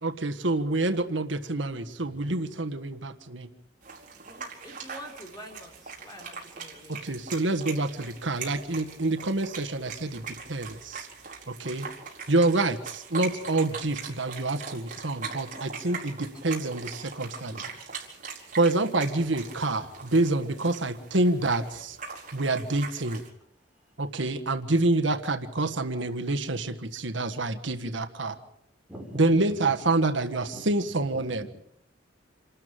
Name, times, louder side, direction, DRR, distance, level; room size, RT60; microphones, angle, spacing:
voice 1, 0.0-3.5 6.9-11.1 11.5-11.9 12.3-17.7 18.6-22.0 22.3-23.2 24.0-28.4 29.1-31.4, right 2 dB, 80° right, 1.6 m, -27 dB
voice 2, 2.0-2.4 17.5-17.8 28.9-29.7 30.5-30.6 31.0-31.4, equal, 5° right, 5.2 m, -44 dB
sound 1, 3.8-23.3, right 5 dB, 45° right, 4.5 m, -41 dB
voice 3, 4.2-7.0, equal, 20° left, 4.2 m, -47 dB
28.0 x 13.0 x 9.2 m
head